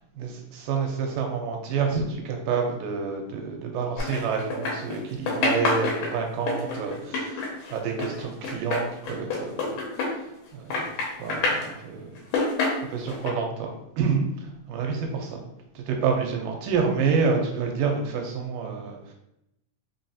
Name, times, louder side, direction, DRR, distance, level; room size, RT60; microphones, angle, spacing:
voice 1, 0.2-9.6 10.1-10.2 10.5-12.2 12.9-13.7 14.0-15.4 15.8-19.1, right 5 dB, 90° right, 2 dB, 2.2 m, -28 dB
sound 1, 4.0-5.0 5.3-10.4 10.7-11.7 12.2-13.3, left 3 dB, 80° left, 2.5 m, -27 dB
5.3 x 2.6 x 2.4 m, 0.83 s
omnidirectional pair, 3.8 m